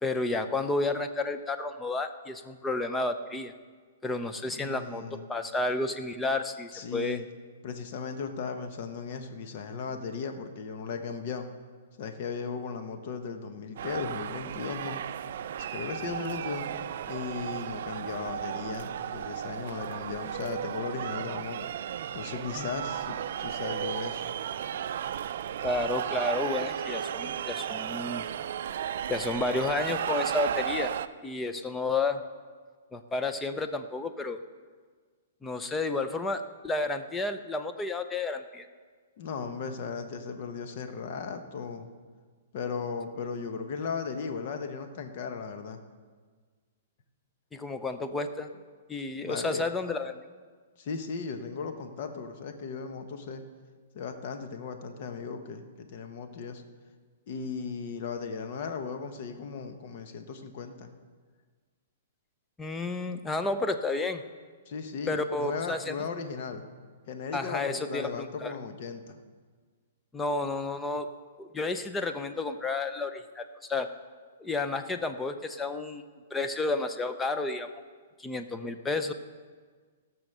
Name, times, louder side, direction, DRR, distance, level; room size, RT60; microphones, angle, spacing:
voice 1, 0.0-3.5 4.0-5.0 5.3-7.2 22.6-22.7 25.6-28.2 29.1-30.9 31.2-32.2 32.9-34.4 35.4-38.7 47.5-48.5 48.9-50.3 62.6-64.2 65.1-65.9 67.3-68.5 70.1-71.1 71.4-73.9 74.4-76.0 76.3-77.7 78.2-79.1, left 3 dB, 10° left, 9 dB, 0.6 m, -31 dB
voice 2, 4.6-5.3 6.7-7.3 7.6-11.5 12.0-15.0 15.6-16.6 17.1-21.7 22.1-24.3 39.2-41.9 42.5-45.8 49.2-49.6 50.8-53.4 53.9-56.6 57.3-60.9 64.7-66.6 67.1-69.2, left 5 dB, 50° left, 7 dB, 1.1 m, -36 dB
sound 1, 13.8-31.1, right 9 dB, 65° right, 0.4 m, -34 dB
15.5 x 6.3 x 6.6 m, 1.5 s
hypercardioid pair, 150°, 0 cm